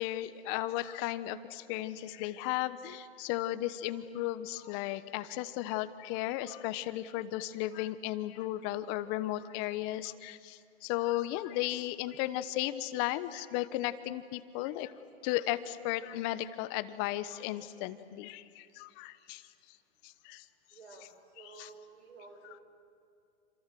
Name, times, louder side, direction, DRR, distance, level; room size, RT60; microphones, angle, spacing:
voice 1, 0.0-14.9 15.2-19.4 20.0-20.5 21.4-21.7 22.4-22.6, left 15 dB, 40° left, 13 dB, 1.2 m, -35 dB
voice 2, 20.7-21.1 21.4-22.6, right 4 dB, 85° right, 3 dB, 7.5 m, -52 dB
27.5 x 27.0 x 7.7 m, 2.3 s
hypercardioid pair, 130°, 32 cm